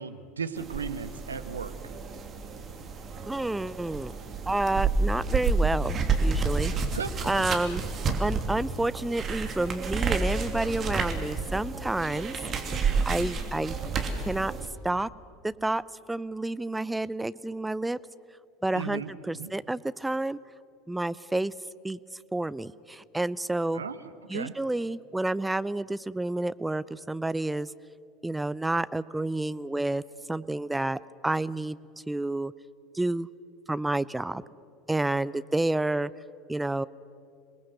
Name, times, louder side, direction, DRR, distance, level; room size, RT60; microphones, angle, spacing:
voice 1, 0.0-1.7 6.9-7.4 18.7-19.1 19.3-19.5 23.7-24.0 24.3-24.5, right 6 dB, 75° right, 11 dB, 1.1 m, -35 dB
sound 1, 0.6-14.7, right 4 dB, 30° right, 2.8 m, -30 dB
voice 2, 3.3-4.1 4.5-6.7 7.2-7.8 8.2-12.3 13.1-13.8 14.2-14.5 14.8-15.1 15.4-15.8 16.1-18.0 18.6-20.4 20.9-21.5 21.8-22.0 22.3-23.8 24.3-27.7 28.2-30.0 30.3-31.8 32.1-32.5 32.9-33.3 33.7-34.4 34.9-36.1 36.5-36.9, right 2 dB, 10° right, 17 dB, 0.6 m, -29 dB
27.0 x 19.5 x 8.0 m, 2.5 s
figure-of-eight pair, 75°, 0 cm